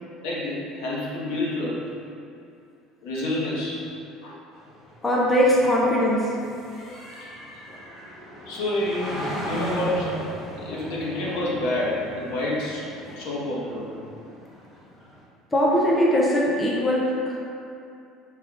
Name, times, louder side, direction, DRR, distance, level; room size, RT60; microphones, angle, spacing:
voice 1, 0.2-1.8 3.0-3.8 4.2-4.4 7.2-7.3 8.5-10.1 10.6-12.9 13.1-13.9, left 1 dB, 85° left, -6 dB, 1.2 m, -28 dB
sound 1, 4.5-15.2, equal, 35° left, 1.0 m, -37 dB
voice 2, 5.0-6.3 7.7-7.8 15.5-17.4, equal, 10° left, -4 dB, 0.5 m, -21 dB
6.2 x 3.5 x 2.4 m, 2.6 s
cardioid pair, 170°, 0 cm